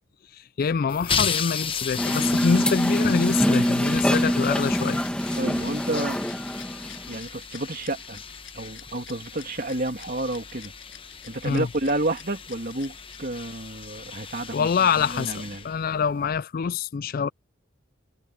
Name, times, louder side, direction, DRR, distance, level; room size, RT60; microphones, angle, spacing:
voice 1, 0.6-5.0 11.4-11.7 14.5-17.3, left 6 dB, 50° left, 0.4 m, -25 dB
sound 1, 0.9-16.3, left 6 dB, 25° left, 1.0 m, -35 dB
sound 2, 2.0-7.2, equal, 5° left, 1.3 m, -24 dB
Rattle, 4.7-13.6, left 11 dB, 75° left, 6.2 m, -48 dB
voice 2, 5.4-6.2 7.1-8.2 8.5-10.7 11.2-15.7, right 2 dB, 50° right, 2.7 m, -30 dB
head